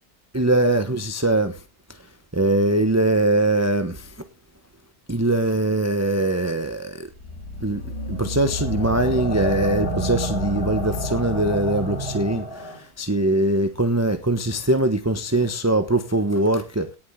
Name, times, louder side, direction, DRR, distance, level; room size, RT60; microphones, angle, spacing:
voice 1, 0.3-1.6 2.3-4.1 5.1-7.1 7.6-17.0, right 1 dB, 10° right, 0.8 m, -22 dB
sound 1, 7.2-12.8, equal, 35° left, 7.1 m, -29 dB
18.0 x 7.5 x 3.7 m
omnidirectional pair, 1.9 m